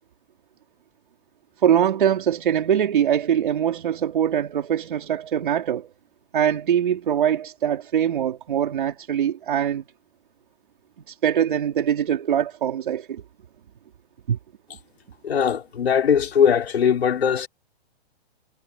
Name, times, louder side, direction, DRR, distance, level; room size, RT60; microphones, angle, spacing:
voice 1, 1.6-5.9 6.3-9.8 11.1-13.2 14.3-14.4, right 9 dB, 50° right, 4.3 m, -22 dB
voice 2, 15.2-17.5, left 7 dB, 70° left, 5.1 m, -20 dB
hypercardioid pair, 180°, 32 cm